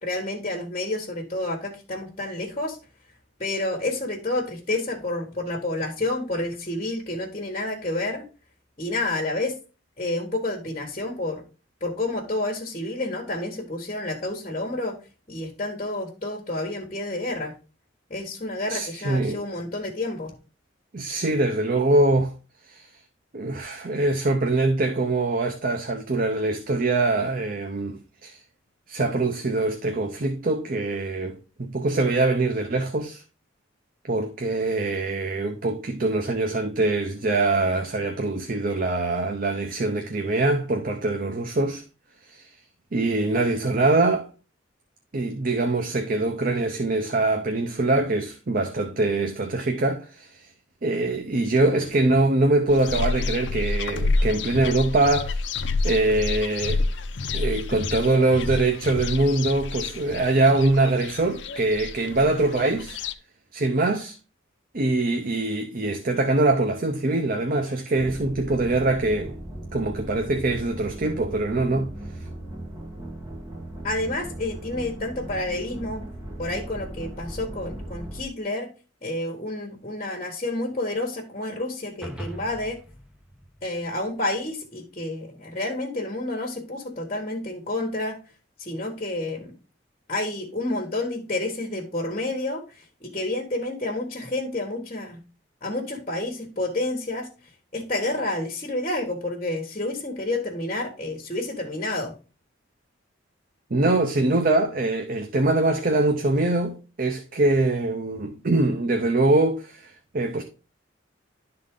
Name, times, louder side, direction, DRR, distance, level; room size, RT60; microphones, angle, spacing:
voice 1, 0.0-2.8 3.4-8.2 8.8-9.5 10.0-11.4 11.8-15.0 15.3-17.5 18.1-20.3 73.8-76.0 76.4-78.7 79.0-82.8 83.6-88.2 88.6-89.5 90.1-95.2 95.6-97.3 97.7-102.1, left 2 dB, 35° left, 1.5 m, -29 dB
voice 2, 18.7-19.4 20.9-22.3 22.6-22.9 23.3-28.4 28.9-33.2 34.1-41.8 42.2-42.5 42.9-44.3 45.1-50.4 50.8-55.4 55.8-56.8 57.3-63.0 63.5-64.1 64.7-69.3 69.7-71.9 103.7-110.4, right 2 dB, 45° right, 0.7 m, -23 dB
sound 1, 52.7-63.1, left 3 dB, 65° left, 0.6 m, -29 dB
sound 2, 68.0-78.2, right 1 dB, 20° right, 1.4 m, -37 dB
Orchestral Toms Double Strike Upward, 82.0-84.5, equal, 5° right, 0.9 m, -41 dB
11.5 x 3.9 x 3.7 m
head